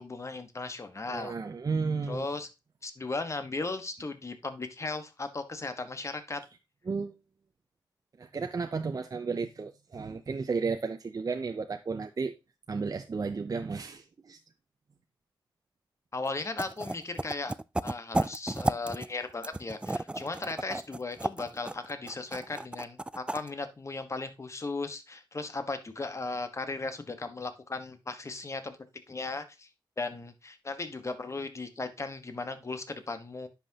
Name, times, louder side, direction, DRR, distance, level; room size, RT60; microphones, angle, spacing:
voice 1, 0.0-1.4 2.1-2.5 2.8-6.4 16.1-17.5 17.8-28.8 29.1-29.7 30.0-33.5, left 3 dB, 35° left, 1.3 m, -36 dB
voice 2, 1.1-2.3 6.9-7.2 8.2-12.3 12.7-14.4, right 4 dB, 45° right, 0.7 m, -33 dB
sound 1, 16.3-16.4 16.6-19.1 19.4-23.5, right 2 dB, 10° right, 0.3 m, -32 dB
10.0 x 5.9 x 2.9 m
cardioid pair, 70°, 9 cm